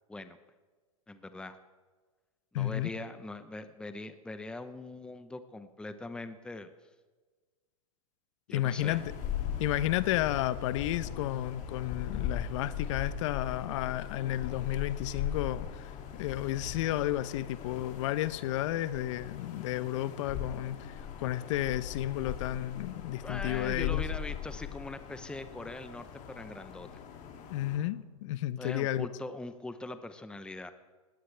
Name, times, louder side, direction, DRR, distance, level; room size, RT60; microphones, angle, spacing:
voice 1, 1.1-1.6 2.5-6.7 8.5-9.0 21.0-21.2 23.2-26.9 28.6-30.7, left 2 dB, 5° left, 0.9 m, -42 dB
voice 2, 2.5-2.9 8.5-9.1 9.6-24.0 27.5-29.1, left 13 dB, 60° left, 0.9 m, -32 dB
sound 1, 8.8-27.8, left 9 dB, 40° left, 2.8 m, -39 dB
19.5 x 17.5 x 3.5 m
hypercardioid pair, 110°, 18 cm